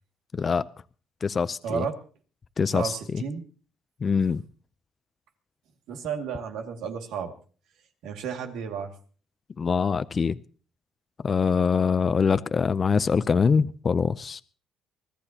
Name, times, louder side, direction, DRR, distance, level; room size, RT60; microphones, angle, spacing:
voice 1, 0.3-0.6 1.2-1.9 2.6-3.2 4.0-4.4 9.6-10.4 11.2-14.4, left 5 dB, 40° left, 0.6 m, -24 dB
voice 2, 1.6-1.9 2.7-3.4 5.9-7.3 8.0-8.9, right 6 dB, 80° right, 2.3 m, -32 dB
24.5 x 14.0 x 2.9 m
cardioid pair, 90°, 0 cm